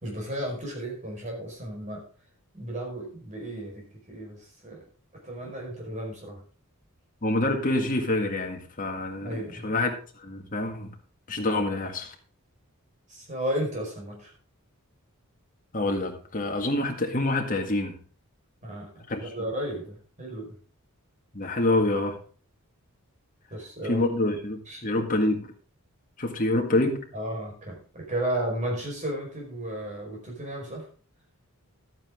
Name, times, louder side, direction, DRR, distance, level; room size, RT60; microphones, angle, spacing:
voice 1, 0.0-2.0 2.5-4.8 5.2-6.4 9.2-9.7 13.1-14.3 18.6-18.9 19.2-20.5 23.5-24.1 24.7-25.1 27.1-30.8, right 1 dB, 35° right, 0 dB, 4.9 m, -34 dB
voice 2, 7.2-9.9 10.2-10.9 11.3-12.1 15.7-18.0 19.1-19.3 21.3-22.2 23.9-25.5 26.2-27.1, left 2 dB, 40° left, 3 dB, 1.9 m, -26 dB
12.5 x 8.9 x 3.7 m, 0.40 s
head